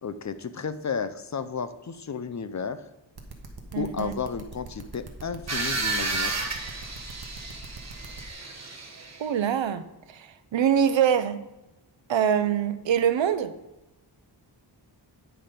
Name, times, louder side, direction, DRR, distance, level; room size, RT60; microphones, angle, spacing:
voice 1, 0.0-2.8 3.8-6.4, left 6 dB, 40° left, 0.5 m, -33 dB
sound 1, 3.2-8.2, right 3 dB, 55° right, 1.2 m, -42 dB
voice 2, 3.7-4.1 9.2-9.8 10.1-11.4 12.1-13.5, right 8 dB, 80° right, 0.7 m, -24 dB
sound 2, 5.5-9.3, right 3 dB, 35° right, 1.2 m, -32 dB
9.1 x 5.8 x 5.0 m
wide cardioid pair, 130°, 45 cm